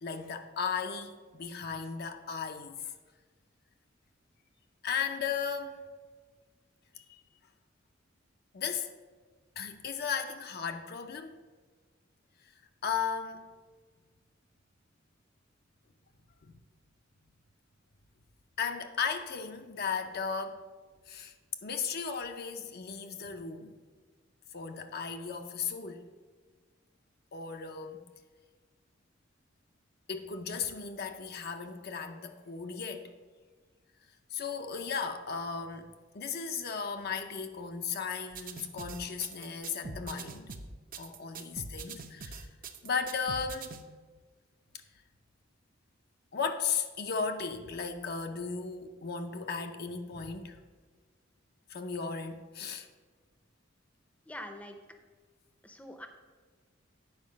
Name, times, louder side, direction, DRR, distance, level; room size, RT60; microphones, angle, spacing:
voice 1, 0.0-2.8 4.8-5.8 7.0-7.2 8.5-8.9 9.6-11.4 12.8-13.4 16.4-16.5 18.6-20.6 21.1-21.3 21.6-23.7 24.5-26.1 27.3-28.0 30.1-33.1 34.3-40.5 41.0-42.5 42.8-43.7 46.3-50.6 51.7-52.9, left 6 dB, 55° left, 0.6 m, -36 dB
sound 1, 38.3-43.8, right 4 dB, 45° right, 0.7 m, -43 dB
voice 2, 54.3-54.8 55.6-56.1, left 1 dB, 5° left, 0.6 m, -44 dB
9.5 x 4.8 x 6.3 m
head